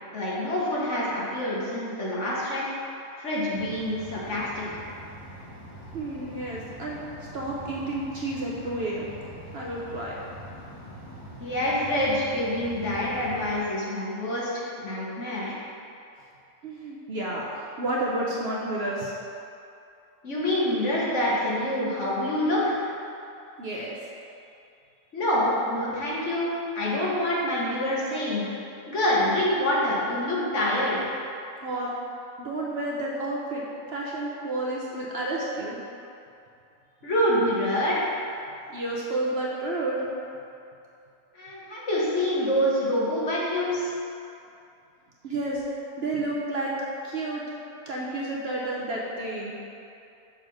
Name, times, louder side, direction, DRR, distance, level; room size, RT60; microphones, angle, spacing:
voice 1, 0.1-2.6 3.2-4.8 11.4-15.6 20.2-22.8 25.1-28.5 28.9-31.0 37.0-38.1 41.3-43.9, left 1 dB, 55° left, -7 dB, 1.6 m, -26 dB
sound 1, 3.5-13.6, equal, 25° left, 1.6 m, -44 dB
voice 2, 5.9-7.0 7.3-9.1 9.5-10.1 16.6-19.1 23.6-24.0 31.6-31.9 32.4-35.8 38.7-40.0 45.2-45.6 46.0-46.7 47.0-47.4 47.9-49.5, right 2 dB, 50° right, -4 dB, 0.9 m, -30 dB
6.6 x 3.6 x 6.2 m, 2.6 s
omnidirectional pair, 1.5 m